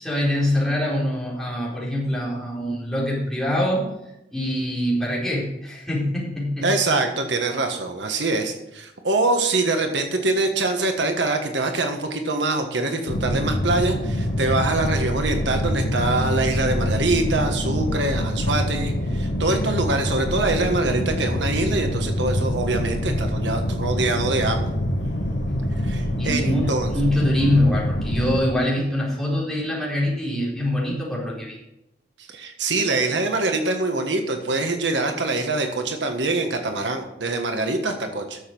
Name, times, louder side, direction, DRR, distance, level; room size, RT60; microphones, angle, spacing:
voice 1, 0.0-3.9 4.3-6.7 26.2-31.6, left 1 dB, ahead, -6 dB, 4.3 m, -24 dB
voice 2, 6.6-24.7 25.8-26.9 32.3-38.4, right 2 dB, 75° right, 5 dB, 1.4 m, -24 dB
sound 1, 13.1-28.4, equal, 70° left, 1.5 m, -25 dB
11.5 x 7.3 x 6.2 m, 0.87 s
head